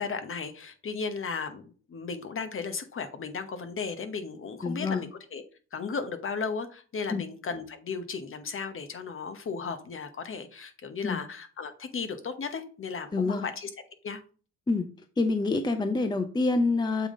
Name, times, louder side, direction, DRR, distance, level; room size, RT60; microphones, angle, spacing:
voice 1, 0.0-5.4 5.7-13.7 14.0-14.2, left 5 dB, 45° left, 9 dB, 1.0 m, -35 dB
voice 2, 4.6-5.0 7.1-7.2 11.0-11.2 13.1-13.5 14.7-14.9 15.2-17.1, left 3 dB, 15° left, 9 dB, 0.5 m, -26 dB
7.2 x 3.6 x 3.7 m, 0.40 s
cardioid pair, 90°, 30 cm